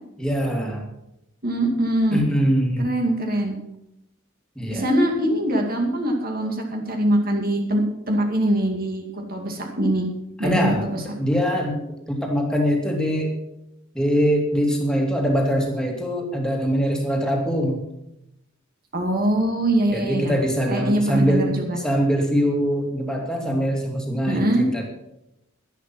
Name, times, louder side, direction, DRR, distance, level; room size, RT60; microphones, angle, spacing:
voice 1, 0.2-0.9 2.1-2.9 4.6-4.9 10.4-11.8 12.1-13.3 13.9-17.8 19.9-21.5 21.8-24.9, equal, 5° left, 1 dB, 2.7 m, -23 dB
voice 2, 1.4-2.2 2.8-3.6 4.7-9.0 9.3-10.1 10.4-11.0 18.9-20.3 20.7-21.8 24.3-24.6, right 1 dB, 50° right, 2 dB, 2.3 m, -22 dB
11.5 x 11.0 x 6.1 m, 0.86 s
head